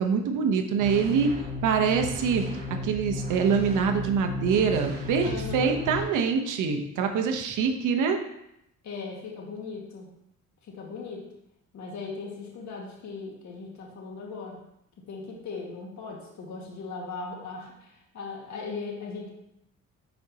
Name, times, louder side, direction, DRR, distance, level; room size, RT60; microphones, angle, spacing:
voice 1, 0.0-1.3 1.6-2.5 2.8-8.2, right 6 dB, 85° right, 4 dB, 1.0 m, -25 dB
sound 1, 0.7-6.0, left 2 dB, 35° right, 2.7 m, -34 dB
voice 2, 5.2-5.8 8.8-10.1 10.6-11.2 11.7-14.6 15.0-19.3, left 4 dB, 70° left, -1 dB, 1.8 m, -38 dB
10.5 x 5.2 x 2.9 m, 0.81 s
cardioid pair, 90°, 30 cm